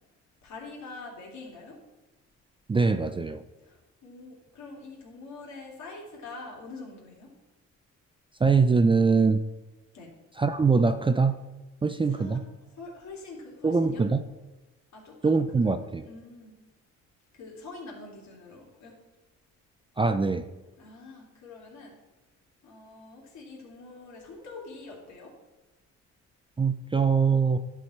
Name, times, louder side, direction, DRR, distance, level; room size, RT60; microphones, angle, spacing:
voice 1, 0.4-1.8 3.6-7.3 9.9-10.1 12.1-12.4 12.7-14.1 14.9-15.7 16.1-16.6 17.3-18.9 20.8-21.9 22.6-25.3, left 3 dB, 65° left, -2 dB, 2.8 m, -45 dB
voice 2, 2.7-3.4 8.4-9.4 10.4-11.4 11.8-12.4 13.6-14.2 15.2-16.1 20.0-20.5 26.6-27.6, right 4 dB, 15° right, 10 dB, 0.4 m, -23 dB
11.0 x 4.9 x 4.3 m, 1.1 s
cardioid pair, 90°, 30 cm